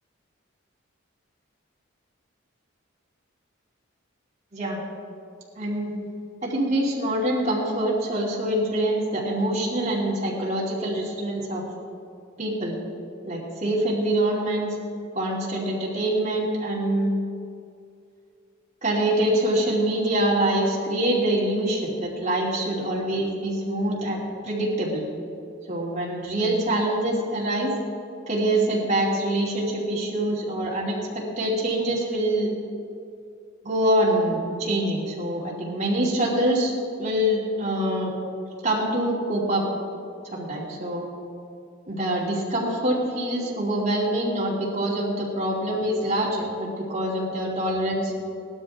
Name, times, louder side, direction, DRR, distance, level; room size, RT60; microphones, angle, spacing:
voice 1, 5.5-6.0 6.4-11.6 12.4-12.8 13.3-14.8 15.1-17.1 18.8-25.1 25.7-27.7 28.3-32.5 33.6-36.7 37.0-38.1 38.6-39.7 40.2-41.1 41.9-48.1, right 1 dB, 35° right, -5 dB, 2.9 m, -25 dB
18.0 x 12.5 x 3.7 m, 2.4 s
head